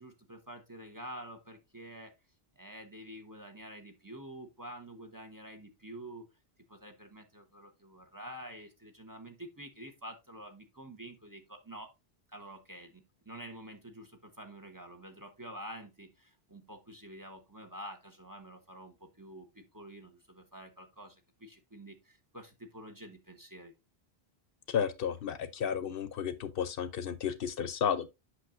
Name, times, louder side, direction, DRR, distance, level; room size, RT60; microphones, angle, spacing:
voice 1, 0.0-2.1 2.6-6.3 6.7-11.9 12.3-23.7, right 1 dB, 20° right, 1.0 m, -48 dB
voice 2, 24.7-28.1, left 8 dB, 65° left, 0.8 m, -32 dB
8.3 x 5.9 x 2.5 m
omnidirectional pair, 1.0 m